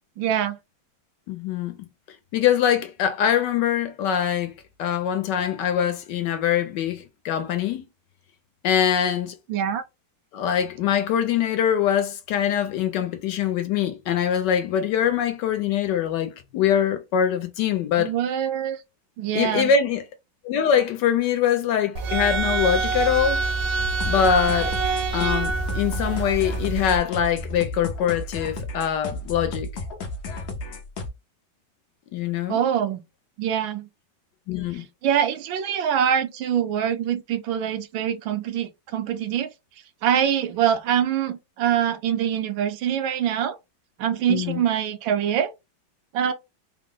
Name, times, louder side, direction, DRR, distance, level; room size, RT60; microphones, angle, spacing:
voice 1, 0.2-0.6 9.5-9.8 18.0-18.8 19.2-19.7 32.5-33.0 33.4-33.9 34.7-39.5 40.0-43.6 44.0-45.5 46.1-46.3, right 9 dB, 80° right, 1.4 m, -24 dB
voice 2, 1.3-1.7 2.3-4.5 4.8-7.9 8.6-9.3 10.3-18.1 19.3-20.0 20.4-23.4 24.0-24.7 25.1-29.7 32.1-32.6 34.5-34.8 44.3-44.6, left 8 dB, 75° left, 1.1 m, -23 dB
sound 1, 22.0-27.0, right 4 dB, 65° right, 1.1 m, -26 dB
sound 2, 23.8-31.1, left 2 dB, 90° left, 0.5 m, -33 dB
3.6 x 2.0 x 3.7 m
omnidirectional pair, 2.1 m